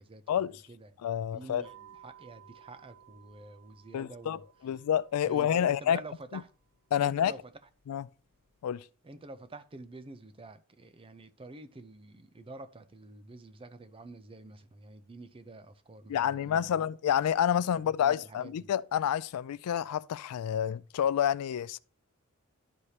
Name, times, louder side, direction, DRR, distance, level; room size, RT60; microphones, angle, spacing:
voice 1, 0.0-1.0 1.3-4.4 5.2-6.5 7.0-7.5 9.0-16.9 17.6-18.7, right 2 dB, 25° right, 0.5 m, -48 dB
voice 2, 1.0-1.7 3.9-6.0 6.9-7.3 7.9-8.1 8.6-8.8 16.1-21.8, left 9 dB, 85° left, 0.3 m, -29 dB
sound 1, 1.6-8.6, right 10 dB, 75° right, 4.0 m, -59 dB
12.0 x 4.9 x 2.8 m
head